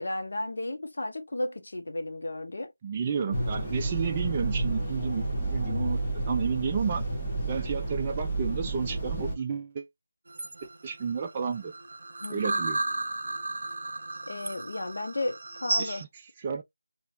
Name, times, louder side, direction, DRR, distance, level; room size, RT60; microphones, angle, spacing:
voice 1, 0.0-2.7 12.2-12.7 14.3-16.0, left 2 dB, 65° left, 1.1 m, -34 dB
voice 2, 2.8-5.2 5.5-6.0 6.3-7.1 7.5-9.9 10.6-11.7 12.3-12.8 15.8-16.1 16.4-16.6, right 6 dB, 20° right, 0.4 m, -31 dB
sound 1, 3.3-9.4, right 2 dB, 15° left, 1.2 m, -31 dB
sound 2, 10.3-16.0, right 2 dB, 60° right, 0.6 m, -34 dB
3.4 x 2.8 x 2.5 m
figure-of-eight pair, 165°, 0 cm